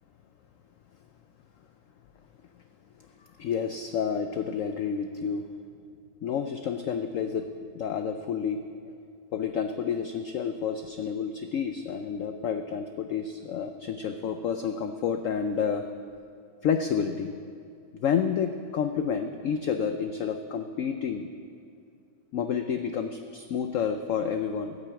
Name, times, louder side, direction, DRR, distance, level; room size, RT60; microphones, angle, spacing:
voice 1, 3.4-5.5 6.2-7.5 7.8-8.6 9.3-15.8 16.6-17.3 17.9-21.3 22.3-24.8, left 7 dB, 80° left, 7 dB, 0.7 m, -29 dB
9.4 x 9.1 x 7.9 m, 2.5 s
omnidirectional pair, 1.9 m